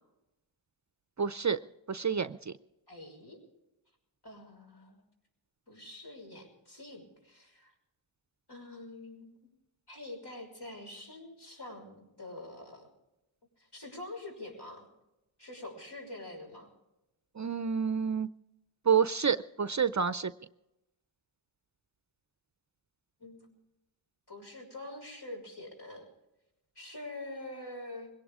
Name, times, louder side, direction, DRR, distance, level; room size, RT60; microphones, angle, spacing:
voice 1, 1.2-1.6 1.9-2.5 17.4-18.3 18.9-20.3, right 6 dB, 40° right, 14 dB, 0.5 m, -28 dB
voice 2, 2.9-3.4 4.2-5.0 5.7-7.7 8.5-9.3 9.9-12.9 13.6-14.9 15.4-16.7 23.2-23.6 24.3-26.1 26.8-28.1, left 2 dB, 60° left, 1 dB, 6.1 m, -45 dB
21.5 x 18.0 x 3.6 m, 0.94 s
wide cardioid pair, 45°, 46 cm